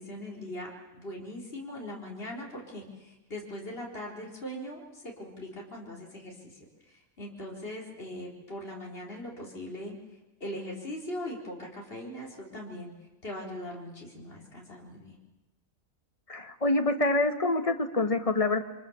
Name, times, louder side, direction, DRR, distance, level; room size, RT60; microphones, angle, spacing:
voice 1, 0.0-10.0 10.4-12.9 13.2-15.2, left 1 dB, 45° left, -1 dB, 4.4 m, -40 dB
voice 2, 16.3-18.6, left 2 dB, 25° left, 6 dB, 1.7 m, -26 dB
29.0 x 24.5 x 7.2 m, 1.0 s
omnidirectional pair, 1.4 m